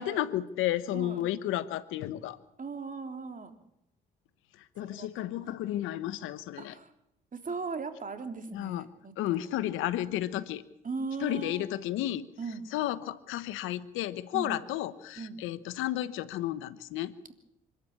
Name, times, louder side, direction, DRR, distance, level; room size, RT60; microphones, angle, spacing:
voice 1, 0.0-2.4 4.6-6.7 8.5-8.9 9.2-10.6 11.2-12.3 12.7-17.1, left 13 dB, 80° left, 15 dB, 1.1 m, -32 dB
voice 2, 2.6-3.6 4.8-5.5 6.6-6.9 7.3-9.1 9.6-9.7 10.8-11.7 12.4-12.7 14.3-14.6 15.2-15.4, right 4 dB, 40° right, 6 dB, 3.3 m, -38 dB
26.0 x 12.5 x 8.8 m, 0.79 s
supercardioid pair, 55°, 20 cm